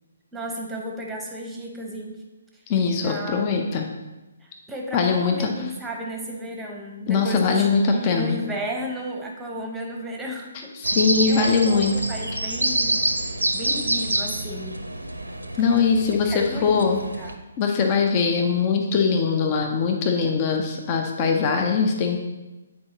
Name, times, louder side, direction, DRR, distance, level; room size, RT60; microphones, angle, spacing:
voice 1, 0.3-2.2 3.0-3.5 4.4-13.0 13.5-14.9 16.2-17.4, equal, 5° right, 0 dB, 0.9 m, -34 dB
voice 2, 2.7-3.8 4.9-5.5 7.1-8.4 10.8-11.9 15.6-17.0 17.6-22.2, left 5 dB, 30° left, 3 dB, 0.6 m, -21 dB
sound 1, 10.8-17.3, right 1 dB, 85° right, 0.7 m, -27 dB
8.6 x 4.6 x 2.9 m, 1.1 s
figure-of-eight pair, 135°, 0 cm